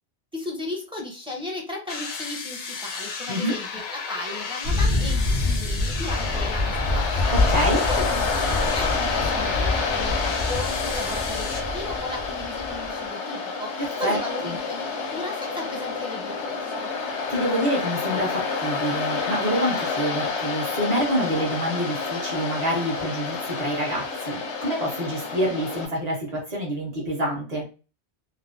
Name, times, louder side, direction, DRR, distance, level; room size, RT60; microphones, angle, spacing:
voice 1, 0.3-16.9, left 2 dB, 5° right, -1 dB, 0.6 m, -36 dB
sound 1, 1.9-11.6, left 5 dB, 60° left, 0.6 m, -34 dB
Thunder, 4.6-12.9, left 2 dB, 90° right, 1.1 m, -26 dB
Waves surf, 6.1-25.9, left 4 dB, 85° left, 0.9 m, -29 dB
voice 2, 7.3-7.8 13.8-14.2 14.4-14.6 17.3-27.6, equal, 40° right, -3 dB, 1.2 m, -27 dB
3.2 x 2.0 x 2.5 m, 0.34 s
omnidirectional pair, 1.1 m